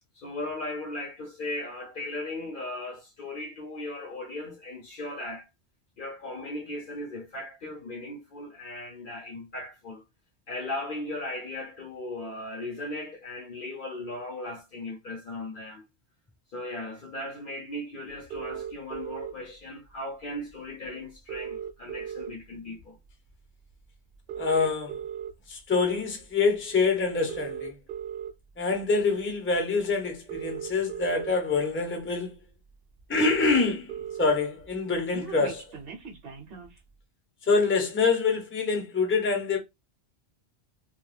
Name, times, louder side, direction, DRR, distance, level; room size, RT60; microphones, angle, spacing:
voice 1, 0.1-5.5 6.0-10.0 10.5-15.9 16.5-23.0, left 1 dB, 55° left, 0.7 m, -37 dB
sound 1, 18.3-19.3 20.5-20.6 20.8-20.9 21.1-22.6 23.1-23.3 24.1-25.3 26.0-26.2 27.1-28.3 29.5-29.6 30.1-31.3 32.0-32.1 32.4-32.5 32.7-32.8 33.0-34.3 34.6-36.8, right 8 dB, 60° right, 0.8 m, -37 dB
voice 2, 24.4-25.0 25.5-27.8 28.6-32.3 33.1-35.7 37.5-39.6, left 4 dB, 15° left, 0.6 m, -26 dB
2.3 x 2.2 x 3.2 m
omnidirectional pair, 1.1 m